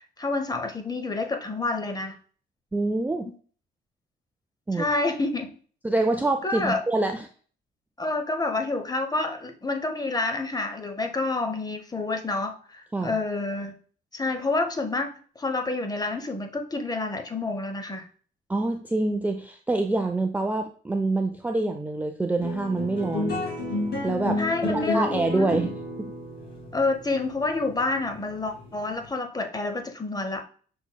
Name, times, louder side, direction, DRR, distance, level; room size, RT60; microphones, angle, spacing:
voice 1, 0.0-2.2 4.7-5.5 6.4-6.8 8.0-13.8 14.1-15.1 15.4-18.1 24.4-25.7 26.7-30.4, left 3 dB, 20° left, 5 dB, 0.8 m, -28 dB
voice 2, 2.7-3.3 4.7-4.9 5.8-7.3 12.9-13.2 18.5-23.4 24.0-25.7 26.0-26.1, right 2 dB, 10° right, 4 dB, 0.4 m, -26 dB
sound 1, 22.4-29.1, left 2 dB, 55° left, 2.2 m, -31 dB
6.0 x 3.8 x 2.2 m, 0.43 s
cardioid pair, 90°, 20 cm